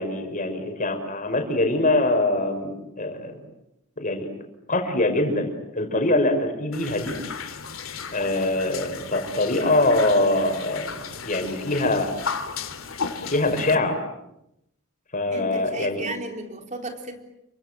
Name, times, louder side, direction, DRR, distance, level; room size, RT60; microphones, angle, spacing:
voice 1, 0.0-3.4 4.0-4.3 4.7-7.1 8.1-11.0 11.2-12.1 13.3-14.0 15.1-16.0, left 2 dB, 40° left, 5 dB, 5.9 m, -23 dB
sound 1, 6.7-13.8, left 5 dB, 75° left, 2.7 m, -35 dB
voice 2, 15.3-17.3, right 2 dB, 35° right, 4 dB, 4.0 m, -34 dB
29.5 x 25.0 x 7.8 m, 0.83 s
head